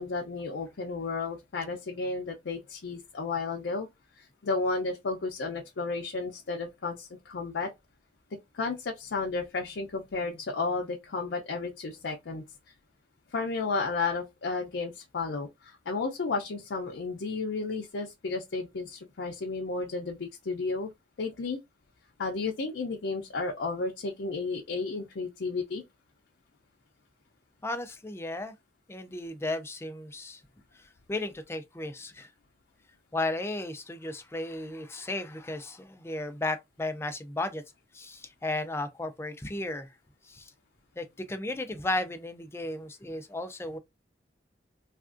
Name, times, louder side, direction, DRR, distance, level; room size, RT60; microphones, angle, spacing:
voice 1, 0.0-3.9 4.2-7.7 8.5-12.4 13.3-20.9 21.2-21.6 22.2-25.8, left 3 dB, 90° left, 0.5 m, -33 dB
voice 2, 27.6-28.5 28.9-30.4 30.8-32.3 33.1-37.6 37.9-39.9 40.3-40.5 41.0-43.8, left 2 dB, 15° left, 0.4 m, -34 dB
3.4 x 2.4 x 2.4 m
head